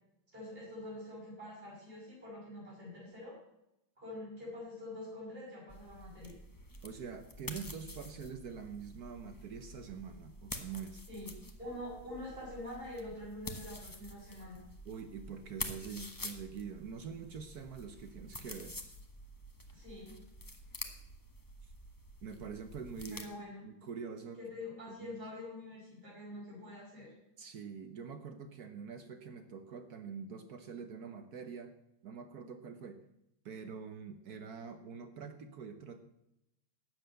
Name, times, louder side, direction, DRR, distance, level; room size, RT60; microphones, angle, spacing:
voice 1, 0.3-3.4 4.0-6.4 11.1-14.6 19.7-20.2 23.1-23.6 24.4-27.1, left 1 dB, 25° right, -7 dB, 6.7 m, -46 dB
sound 1, 5.7-23.2, left 1 dB, 25° left, 0.4 m, -48 dB
voice 2, 6.8-11.0 14.8-18.7 22.2-23.3 23.7-24.4 24.9-25.1 27.4-31.7 32.0-33.0 33.4-36.0, right 6 dB, 60° right, 8 dB, 1.1 m, -45 dB
12.0 x 7.9 x 7.7 m, 0.85 s
omnidirectional pair, 2.4 m